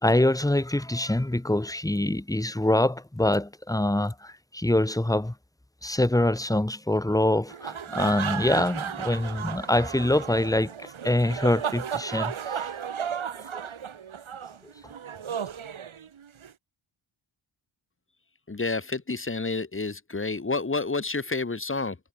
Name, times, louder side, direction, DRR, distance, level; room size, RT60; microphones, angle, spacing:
voice 1, 0.0-5.3 5.8-12.7 13.5-13.6, left 1 dB, 5° left, 1.4 m, -25 dB
sound 1, 7.5-16.5, right 8 dB, 75° right, 6.1 m, -34 dB
voice 2, 18.5-22.0, left 3 dB, 25° left, 3.3 m, -29 dB
wide cardioid pair, 105°, 49 cm